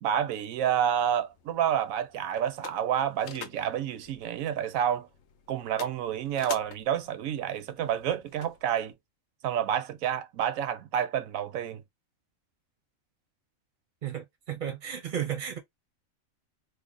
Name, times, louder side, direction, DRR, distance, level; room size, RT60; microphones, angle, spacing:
voice 1, 0.0-5.1 5.5-8.9 9.4-11.8, right 9 dB, 80° right, 1.0 m, -29 dB
Shifting Car, 0.9-8.9, left 8 dB, 65° left, 0.8 m, -48 dB
voice 2, 14.0-15.6, right 9 dB, 50° right, 0.7 m, -34 dB
3.2 x 2.0 x 3.7 m
omnidirectional pair, 1.4 m